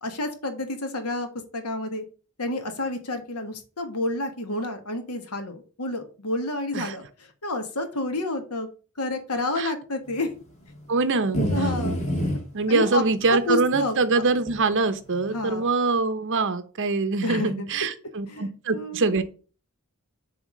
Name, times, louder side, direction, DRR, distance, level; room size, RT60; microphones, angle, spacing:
voice 1, 0.0-1.3 1.5-2.0 2.4-8.7 9.0-10.3 11.5-12.0 12.7-13.0 13.3-14.2 15.3-15.7 17.2-17.7 18.3-19.2, left 2 dB, 80° left, 7 dB, 1.5 m, -29 dB
voice 2, 10.9-11.7 12.5-19.2, right 3 dB, 60° right, 11 dB, 0.9 m, -24 dB
sound 1, 11.3-12.4 13.7-13.8 14.5-14.6, equal, 30° left, 2.0 m, -25 dB
7.1 x 3.6 x 6.3 m, 0.37 s
head